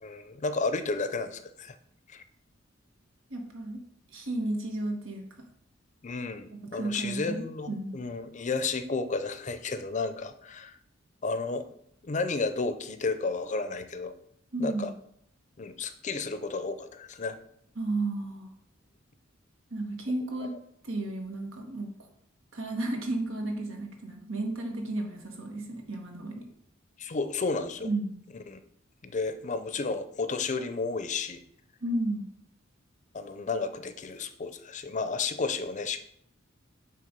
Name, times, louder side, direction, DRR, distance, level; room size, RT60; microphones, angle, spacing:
voice 1, 0.0-1.8 2.1-2.2 6.0-10.8 11.2-11.6 12.0-14.1 14.6-14.9 15.6-17.4 20.5-20.6 27.0-27.9 28.5-28.6 29.0-31.4 33.1-36.0, left 4 dB, 40° left, 10 dB, 0.5 m, -32 dB
voice 2, 3.3-3.8 4.1-5.2 6.7-8.0 14.5-15.0 17.7-18.5 19.7-20.5 20.8-21.9 22.5-26.4 27.8-28.2 31.8-32.3, right 2 dB, 90° right, 2 dB, 1.6 m, -33 dB
8.6 x 3.4 x 5.2 m, 0.70 s
head